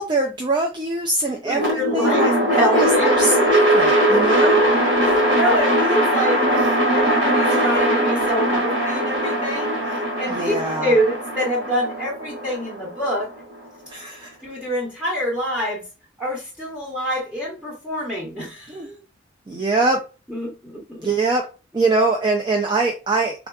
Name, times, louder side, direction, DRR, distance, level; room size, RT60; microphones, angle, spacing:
voice 1, 0.0-4.6 10.3-10.9 13.9-14.4 18.7-18.9 19.5-20.0 21.0-21.4 21.7-23.5, right 3 dB, 25° right, 2 dB, 0.3 m, -23 dB
voice 2, 1.2-3.2 4.4-4.5 5.0-9.7 10.2-13.3 14.4-15.8 16.2-19.0 19.5-19.6 20.3-21.1, equal, 5° right, -5 dB, 1.1 m, -26 dB
sound 1, 1.5-13.7, right 1 dB, 70° right, 1.7 m, -20 dB
3.5 x 2.3 x 2.3 m, 0.32 s
head